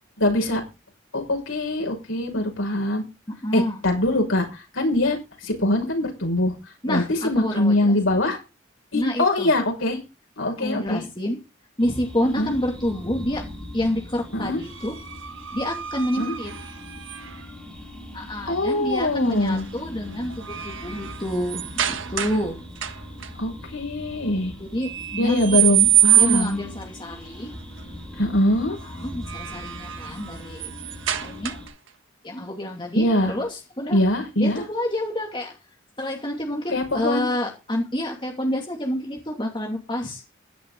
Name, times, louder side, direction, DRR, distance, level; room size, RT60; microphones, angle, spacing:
voice 1, 0.2-0.6 1.1-3.0 3.5-5.2 5.4-6.5 6.9-8.4 8.9-10.0 10.4-11.0 12.3-12.5 14.3-14.6 16.2-16.3 18.5-19.7 23.4-24.5 25.2-26.6 28.2-28.8 32.9-33.3 33.9-34.6 36.7-37.3, left 1 dB, 80° left, 6.2 m, -23 dB
voice 2, 3.3-3.8 6.8-8.0 8.9-9.5 10.6-11.4 11.8-13.5 13.7-15.0 15.5-16.5 18.1-22.6 24.6-25.7 26.2-27.5 28.8-30.7 31.2-31.6 32.2-34.0 34.4-35.6 36.0-40.2, left 1 dB, 25° left, 2.7 m, -28 dB
sound 1, 11.8-31.7, equal, 5° left, 6.6 m, -41 dB
sound 2, 14.6-17.5 19.3-19.6 20.0-22.5 22.8-23.3 24.8-26.7 29.0-31.9, right 12 dB, 75° right, 1.5 m, -25 dB
16.0 x 11.0 x 4.0 m
head